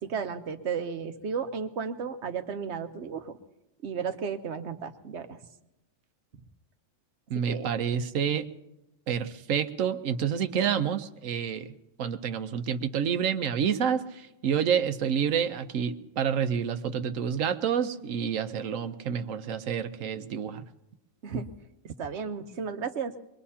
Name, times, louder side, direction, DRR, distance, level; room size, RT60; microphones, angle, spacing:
voice 1, 0.0-3.4 3.8-5.4 7.5-7.7 21.2-21.5 21.8-23.1, right 6 dB, 60° right, 8 dB, 1.2 m, -34 dB
voice 2, 7.3-8.5 9.1-11.7 12.0-20.6, right 8 dB, 85° right, 9 dB, 1.2 m, -28 dB
23.5 x 21.5 x 2.8 m, 0.92 s
omnidirectional pair, 1.3 m